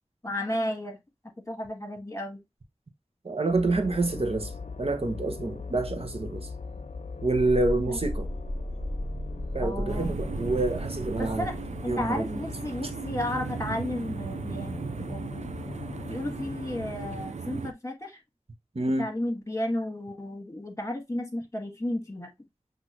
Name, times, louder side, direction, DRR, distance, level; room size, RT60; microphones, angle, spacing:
voice 1, 0.2-1.0 1.5-2.4 7.9-8.0 9.6-10.2 11.2-11.5 11.8-15.2 16.1-18.2 19.0-22.3, left 1 dB, 25° left, 1.7 m, -33 dB
voice 2, 3.2-4.5 4.8-6.5 7.2-8.3 9.5-11.5 11.9-12.4 18.7-19.1, right 2 dB, 55° right, 1.1 m, -27 dB
sound 1, 3.5-17.3, left 4 dB, 80° left, 0.6 m, -40 dB
sound 2, 7.4-12.2 12.5-12.6, equal, 25° right, 2.2 m, -35 dB
sound 3, 9.9-17.7, right 5 dB, 75° right, 0.4 m, -37 dB
6.1 x 2.8 x 2.9 m
wide cardioid pair, 55°, 12 cm